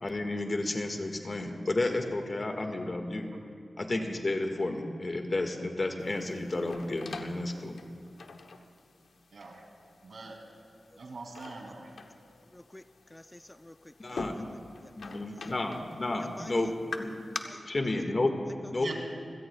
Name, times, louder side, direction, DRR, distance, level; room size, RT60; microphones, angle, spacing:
voice 1, 0.0-3.3 3.8-7.8 14.0-14.5 15.0-16.7 17.0-17.1 17.7-18.3 18.7-18.9, left 2 dB, 45° left, 4 dB, 1.7 m, -31 dB
sound 1, 6.0-17.4, left 4 dB, 85° left, 0.9 m, -45 dB
voice 2, 9.3-9.6 10.0-10.4 11.0-11.9 18.8-18.9, right 3 dB, 80° right, 0 dB, 2.8 m, -42 dB
voice 3, 12.5-12.8 13.1-15.5 16.2-16.5 17.4-17.7, left 1 dB, 15° left, 9 dB, 0.4 m, -50 dB
27.5 x 16.5 x 2.3 m, 2.4 s
wide cardioid pair, 65°, 0 cm